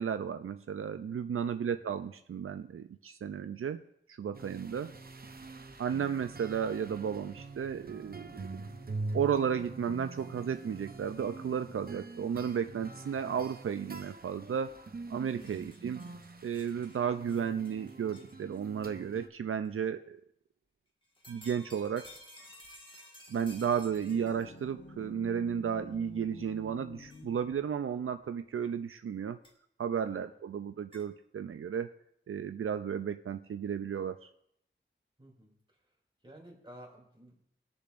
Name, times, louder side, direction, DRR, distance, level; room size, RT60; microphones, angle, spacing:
voice 1, 0.0-3.8 4.1-4.9 5.8-8.5 9.1-14.8 15.1-16.1 16.4-20.2 21.3-22.1 23.3-29.4 29.8-31.9 32.3-34.3, right 7 dB, 80° right, 9 dB, 0.4 m, -33 dB
voice 2, 1.5-1.9 15.4-15.5 30.1-30.3 35.2-36.0 36.2-37.3, equal, 20° right, -2 dB, 2.8 m, -54 dB
sound 1, 4.3-19.3, right 2 dB, 45° right, 0.8 m, -44 dB
sound 2, 14.7-14.8 15.1-18.8 19.6-19.7 21.0-24.6 25.5-25.6 27.1-27.2 29.4-29.5 30.9-31.1, left 1 dB, 25° left, 1.6 m, -55 dB
sound 3, 23.4-28.2, left 2 dB, 40° left, 0.8 m, -50 dB
20.5 x 6.9 x 2.5 m, 0.73 s
wide cardioid pair, 80°, 21 cm